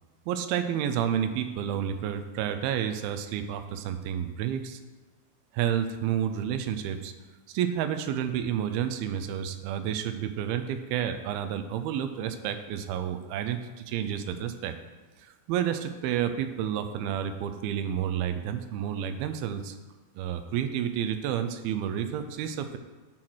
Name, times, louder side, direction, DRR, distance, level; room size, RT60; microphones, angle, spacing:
voice 1, 0.3-4.8 5.5-7.1 7.5-14.7 15.2-19.8 20.2-22.8, right 9 dB, 85° right, 9 dB, 2.5 m, -30 dB
10.5 x 3.9 x 6.2 m, 1.3 s
omnidirectional pair, 4.4 m